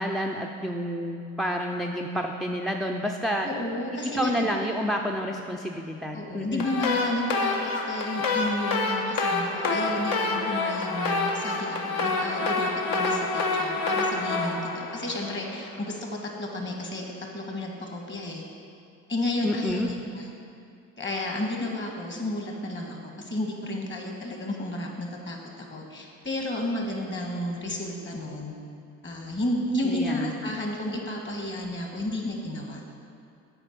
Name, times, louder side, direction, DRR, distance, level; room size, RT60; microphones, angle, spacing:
voice 1, 0.0-3.5 4.1-6.7 19.4-19.9 29.8-30.3, equal, ahead, 1 dB, 0.4 m, -29 dB
voice 2, 3.4-4.7 6.1-16.1 16.4-17.0 17.3-18.4 19.1-20.3 21.0-25.4 25.7-28.5 29.0-32.8, left 1 dB, 30° left, 1 dB, 1.5 m, -32 dB
sound 1, 6.6-15.7, left 3 dB, 65° left, 1.0 m, -27 dB
7.9 x 4.5 x 5.9 m, 2.5 s
supercardioid pair, 70°, 37 cm